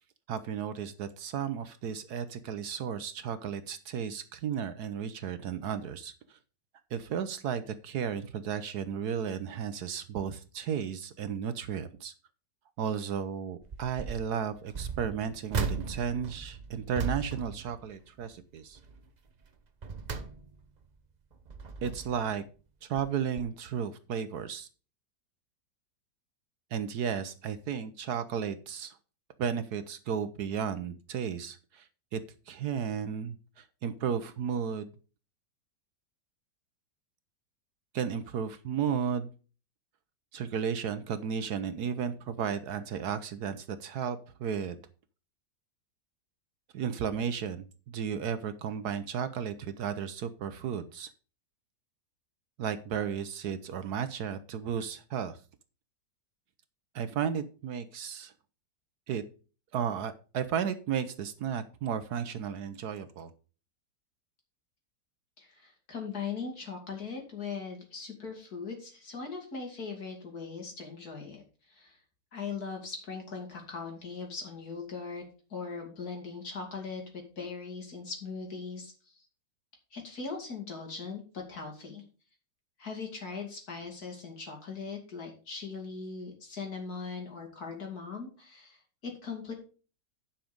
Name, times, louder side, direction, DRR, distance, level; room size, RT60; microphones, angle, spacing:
voice 1, 0.3-6.4 6.9-12.1 12.8-18.8 21.8-22.4 22.8-24.7 26.7-29.0 29.4-32.2 32.5-34.9 37.9-39.3 40.3-44.8 46.7-51.1 52.6-55.4 56.9-58.3 59.1-59.2 59.7-63.3, right 7 dB, 65° right, 12 dB, 1.2 m, -34 dB
sound 1, 13.6-14.3 14.7-18.4 18.7-19.1 19.6-20.8 21.3-22.3 23.0-23.1 23.4-23.5, right 5 dB, 50° right, 0.5 m, -37 dB
voice 2, 65.4-71.4 71.7-72.0 72.3-75.2 75.5-79.2 79.9-82.0 82.8-89.5, left 5 dB, 55° left, 2 dB, 3.1 m, -40 dB
10.5 x 5.8 x 5.2 m, 0.36 s
omnidirectional pair, 1.9 m